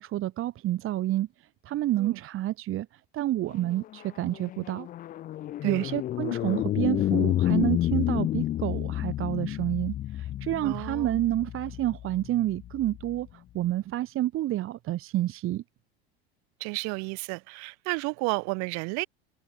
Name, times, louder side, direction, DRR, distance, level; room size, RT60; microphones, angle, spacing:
voice 1, 0.0-4.9 5.6-15.6, right 14 dB, 40° right, 1.5 m, -29 dB
sound 1, 3.6-13.2, left 13 dB, 25° left, 0.5 m, -30 dB
voice 2, 10.6-11.2 16.6-19.1, right 31 dB, 55° right, 3.5 m, -32 dB
hypercardioid pair, 80°, 32 cm